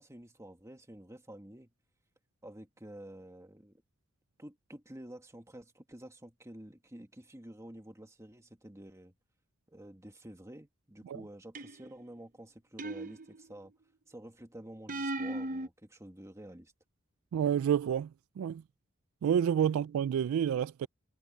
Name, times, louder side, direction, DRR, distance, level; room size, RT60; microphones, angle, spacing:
voice 1, 0.0-1.7 2.4-3.8 4.4-9.1 9.7-13.7 14.1-16.7 20.8-20.9, right 1 dB, 15° right, 1.8 m, -50 dB
sound 1, 11.6-12.0 12.8-13.7 14.9-15.7, right 1 dB, 40° right, 0.9 m, -37 dB
voice 2, 17.3-18.1 18.4-18.6 19.2-20.9, right 8 dB, 90° right, 0.3 m, -29 dB
head